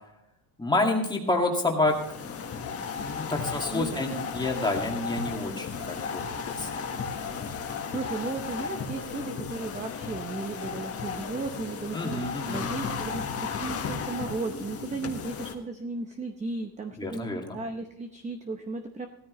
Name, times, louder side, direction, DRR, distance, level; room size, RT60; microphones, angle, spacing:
voice 1, 0.6-6.8 11.9-12.6 17.0-17.6, left 2 dB, 10° left, 1 dB, 2.1 m, -29 dB
sound 1, 1.8-15.5, left 6 dB, 30° left, 1.6 m, -35 dB
voice 2, 3.7-4.7 5.4-5.6 7.6-19.1, right 3 dB, 15° right, 6 dB, 0.8 m, -35 dB
16.0 x 13.5 x 3.2 m, 0.81 s
cardioid pair, 145°, 48 cm